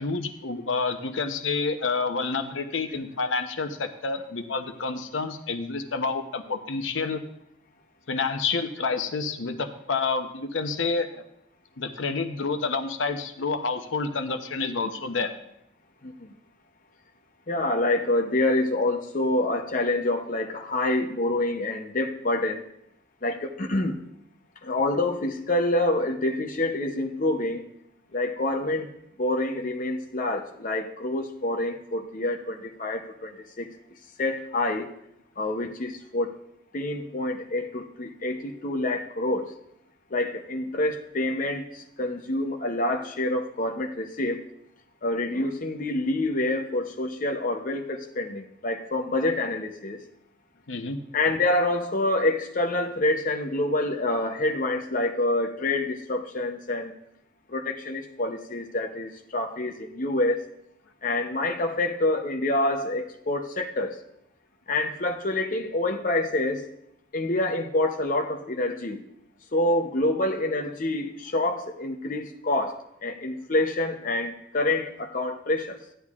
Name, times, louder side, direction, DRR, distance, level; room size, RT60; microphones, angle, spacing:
voice 1, 0.0-7.2 8.1-11.2 11.8-15.3 50.7-51.0, left 4 dB, 80° left, 7 dB, 0.8 m, -29 dB
voice 2, 17.5-22.6 23.2-24.0 24.6-27.7 28.1-28.9 29.2-33.7 34.2-34.9 35.4-36.4 36.7-39.5 40.1-44.5 45.0-50.0 51.1-56.9 57.5-60.4 61.0-64.0 64.7-66.7 67.1-69.0 69.5-75.8, left 2 dB, 45° left, 3 dB, 0.7 m, -27 dB
14.5 x 10.0 x 2.4 m, 0.77 s
head